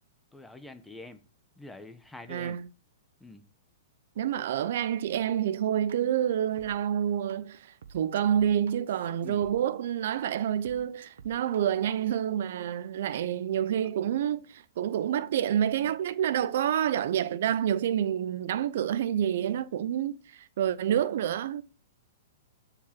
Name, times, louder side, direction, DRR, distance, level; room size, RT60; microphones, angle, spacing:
voice 1, 0.3-1.2 1.6-2.6 3.2-3.4 9.2-9.5, left 2 dB, 5° left, 1.0 m, -46 dB
voice 2, 2.3-2.7 4.2-21.6, right 10 dB, 60° right, 0.7 m, -28 dB
sound 1, 5.9-6.0 6.6-6.7 7.3-7.4 7.8-9.5 10.1-10.2 10.6-11.6, right 7 dB, 80° right, 1.2 m, -50 dB
13.5 x 5.0 x 5.9 m
hypercardioid pair, 150°, 0 cm